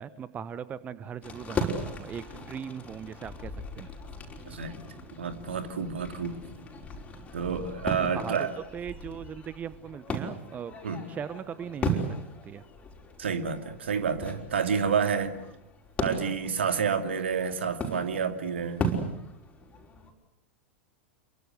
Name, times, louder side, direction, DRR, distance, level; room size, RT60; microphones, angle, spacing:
voice 1, 0.0-3.9 8.1-10.7 11.1-12.0 12.4-12.6, right 8 dB, 25° right, 1.0 m, -39 dB
sound 1, 1.2-20.1, equal, 20° left, 5.4 m, -37 dB
voice 2, 4.4-4.8 5.2-6.4 7.3-8.5 10.8-11.0 13.2-15.4 16.0-18.9, right 6 dB, 65° right, 2.5 m, -29 dB
28.0 x 23.5 x 8.2 m
figure-of-eight pair, 90°, 7 cm